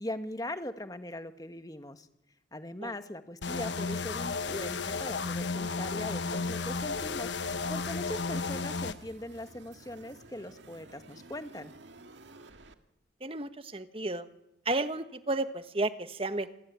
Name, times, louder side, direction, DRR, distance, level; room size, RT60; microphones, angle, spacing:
voice 1, 0.0-2.1 2.5-7.3 7.7-11.7, left 1 dB, 20° left, 9 dB, 1.4 m, -40 dB
sound 1, 3.4-8.9, left 4 dB, 75° left, 1.3 m, -33 dB
sound 2, 6.6-12.7, right 2 dB, 80° right, 2.0 m, -53 dB
voice 2, 13.2-14.3 14.6-16.6, right 2 dB, 30° right, 11 dB, 1.4 m, -32 dB
27.5 x 21.5 x 9.5 m, 0.84 s
head